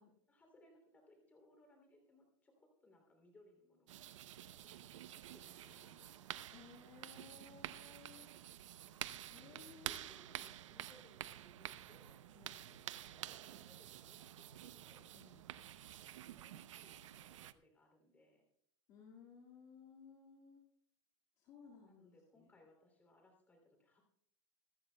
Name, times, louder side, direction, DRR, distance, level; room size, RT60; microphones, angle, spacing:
voice 1, 0.3-4.0 4.5-6.5 9.2-12.2 12.6-15.1 16.3-18.5 21.8-24.0, left 2 dB, 10° left, 3 dB, 2.9 m, -68 dB
sound 1, 3.9-17.5, right 12 dB, 85° right, 0.7 m, -50 dB
voice 2, 5.5-6.2 6.5-8.4 9.2-10.1 12.3-12.8 15.1-15.5 18.9-20.6 21.4-22.1, left 6 dB, 30° left, -3 dB, 2.0 m, -60 dB
25.0 x 13.0 x 2.2 m, 0.70 s
supercardioid pair, 175°, 16 cm